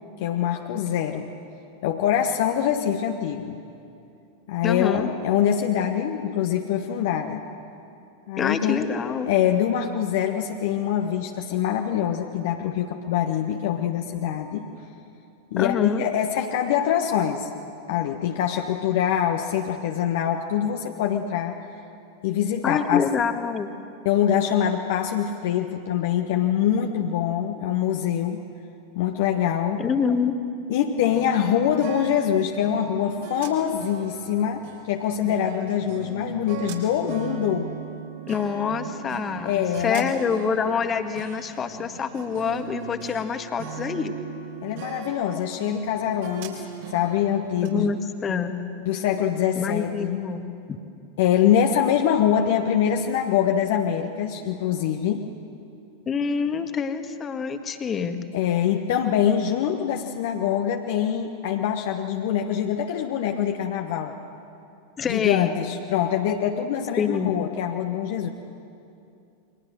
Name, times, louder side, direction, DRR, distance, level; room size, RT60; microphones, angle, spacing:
voice 1, 0.2-1.3 1.8-3.6 4.5-7.4 8.3-14.7 15.5-17.5 17.9-21.6 22.2-23.0 24.0-28.4 28.9-29.8 30.7-37.7 39.4-40.1 44.6-46.6 46.9-47.9 48.8-50.2 51.2-55.2 58.3-64.1 65.1-68.3, left 9 dB, 55° left, 3 dB, 1.3 m, -24 dB
voice 2, 4.6-5.1 8.4-9.3 15.6-16.0 22.6-23.7 29.8-30.3 38.3-44.1 47.6-48.6 49.6-50.4 50.7-50.8 56.1-58.2 65.0-65.6 67.0-67.3, left 6 dB, 25° left, 8 dB, 1.7 m, -26 dB
sound 1, 31.0-43.3 43.6-47.7, right 6 dB, 55° right, 4.0 m, -39 dB
29.0 x 23.5 x 6.6 m, 2.6 s
figure-of-eight pair, 90°, 0 cm